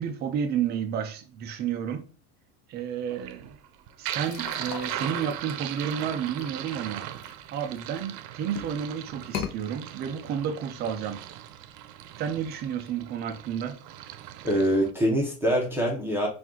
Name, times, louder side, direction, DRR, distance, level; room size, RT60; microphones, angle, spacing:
voice 1, 0.0-2.1 2.7-3.6 4.0-7.1 7.5-11.3 12.2-13.8, right 8 dB, 25° right, 0.3 m, -31 dB
sound 1, 3.1-14.9, right 12 dB, 90° right, 0.6 m, -39 dB
sound 2, 4.2-8.0 8.5-8.8 9.2-9.5, left 7 dB, 50° left, 0.7 m, -38 dB
voice 2, 14.4-16.3, equal, 5° right, 0.7 m, -24 dB
4.4 x 2.6 x 3.6 m
supercardioid pair, 145°, 48 cm